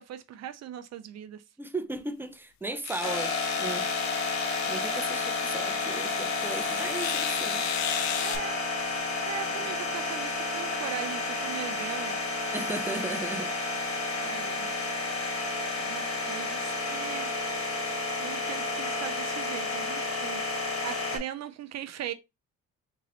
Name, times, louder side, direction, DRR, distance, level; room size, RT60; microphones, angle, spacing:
voice 1, 0.0-1.4 8.2-8.6 9.3-12.2 14.2-14.7 15.8-17.3 18.2-22.1, right 10 dB, 60° right, 0.5 m, -40 dB
voice 2, 1.6-3.9 4.7-7.6 9.5-9.7 12.5-13.5, right 2 dB, 5° right, 0.5 m, -36 dB
sound 1, 2.0-2.1 2.8-8.4, left 10 dB, 65° left, 0.6 m, -35 dB
sound 2, 3.0-21.2, left 3 dB, 50° left, 1.8 m, -31 dB
3.9 x 2.7 x 3.0 m
cardioid pair, 90°, 30 cm